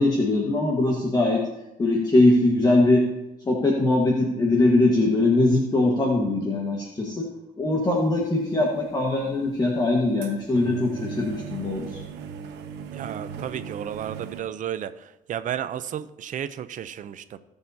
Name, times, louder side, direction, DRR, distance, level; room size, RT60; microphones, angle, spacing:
voice 1, 0.0-1.4 1.8-3.0 3.4-7.2 7.6-12.0, left 2 dB, 25° left, -1 dB, 1.6 m, -21 dB
sound 1, 7.8-8.3 8.6-14.4, right 7 dB, 85° right, 1.0 m, -38 dB
voice 2, 12.9-14.9 15.3-17.4, right 10 dB, 50° right, 13 dB, 0.6 m, -32 dB
18.5 x 6.8 x 2.8 m, 0.95 s
cardioid pair, 110°, 17 cm